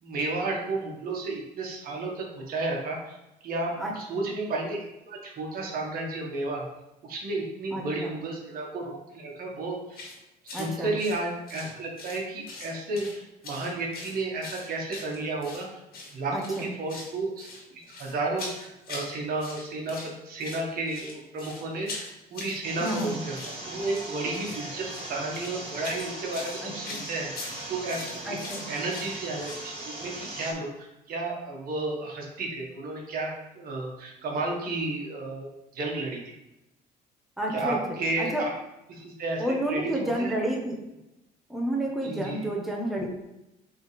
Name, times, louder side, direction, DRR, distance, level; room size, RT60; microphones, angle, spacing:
voice 1, 0.0-3.2 3.4-6.7 7.0-10.0 10.4-15.8 16.1-20.0 20.2-23.4 23.6-28.4 28.7-36.3 37.5-38.3 38.9-40.4 42.0-42.5, right 2 dB, 60° right, -1 dB, 1.5 m, -32 dB
sound 1, 9.9-10.2 10.5-10.7 11.0-12.2 12.5-13.2 13.4-15.6 15.9-16.1 16.4-17.1 17.4-19.1 19.4-20.1 20.4-29.7, left 3 dB, 65° left, 1.9 m, -42 dB
voice 2, 10.5-10.9 16.3-16.7 22.8-23.2 26.6-27.1 28.2-28.6 37.4-38.4 39.4-40.7 41.5-43.1, right 1 dB, ahead, -1 dB, 1.1 m, -30 dB
sound 2, 22.6-30.5, right 2 dB, 35° right, 2.3 m, -39 dB
7.9 x 3.7 x 3.3 m, 0.93 s
cardioid pair, 110°, 17 cm